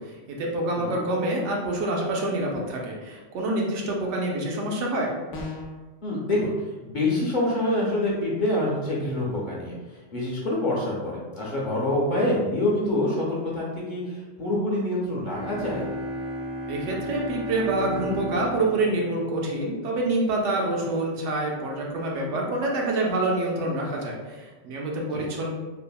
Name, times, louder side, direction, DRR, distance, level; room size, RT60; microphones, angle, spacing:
voice 1, 0.0-5.1 16.7-25.5, right 2 dB, 80° right, -1 dB, 0.9 m, -27 dB
sound 1, 5.3-5.9, left 2 dB, 80° left, 0.9 m, -35 dB
voice 2, 6.0-6.5 6.8-15.8 25.0-25.3, left 1 dB, 50° left, -5 dB, 0.7 m, -26 dB
sound 2, 15.3-19.9, equal, 55° right, 0.7 m, -34 dB
3.4 x 2.0 x 2.2 m, 1.2 s
omnidirectional pair, 1.2 m